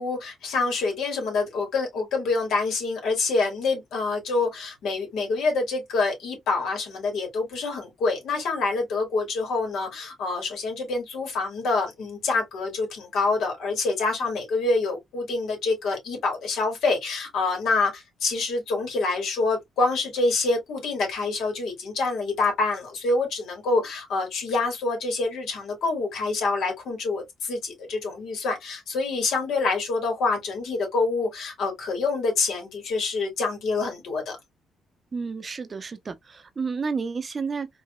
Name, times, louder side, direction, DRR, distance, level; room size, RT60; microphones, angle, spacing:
voice 1, 0.0-34.4, left 3 dB, 75° left, 2.2 m, -26 dB
voice 2, 35.1-37.7, right 5 dB, 35° right, 0.6 m, -31 dB
4.7 x 2.7 x 2.2 m
cardioid pair, 90°, 0 cm